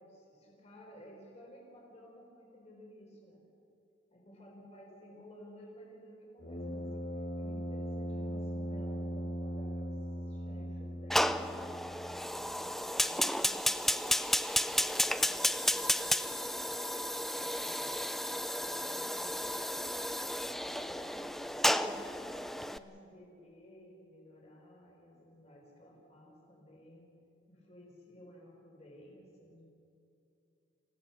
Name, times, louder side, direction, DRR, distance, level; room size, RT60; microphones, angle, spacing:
voice 1, 0.0-3.4 4.1-10.0 10.3-11.7 12.2-14.2 14.6-16.3 17.3-19.6 20.5-27.1 27.5-29.6, equal, 35° left, -2 dB, 4.4 m, -55 dB
Brass instrument, 6.4-12.3, equal, 50° left, 3.0 m, -39 dB
Fire, 11.1-22.8, equal, ahead, 0.4 m, -32 dB
27.5 x 16.0 x 7.0 m, 2.6 s
head